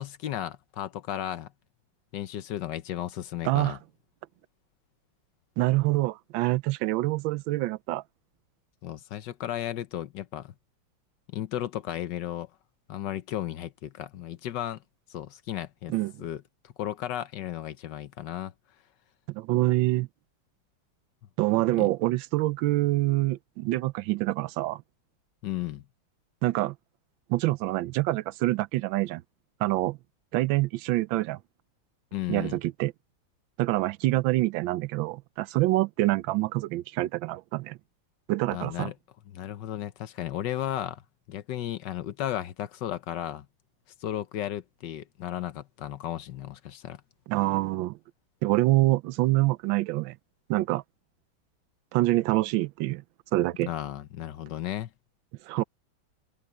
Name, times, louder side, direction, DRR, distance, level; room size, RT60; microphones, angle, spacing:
voice 1, 0.0-1.5 2.1-3.8 8.8-10.5 11.3-12.5 12.9-14.8 15.1-15.9 16.2-18.5 21.8-21.9 25.4-25.8 32.1-32.6 38.5-38.9 39.3-41.0 41.3-43.5 44.0-47.0 53.7-54.9, left 12 dB, 70° left, 1.4 m, -34 dB
voice 2, 3.4-3.8 5.6-8.0 15.9-16.1 19.3-20.1 21.4-24.8 26.4-26.7 27.3-29.2 29.6-30.0 30.3-31.4 32.3-32.9 33.6-37.8 38.3-38.9 47.3-48.0 48.4-50.2 50.5-50.8 51.9-53.0 53.3-53.7 55.5-55.6, right 18 dB, 90° right, 1.3 m, -26 dB
omnidirectional pair, 2.1 m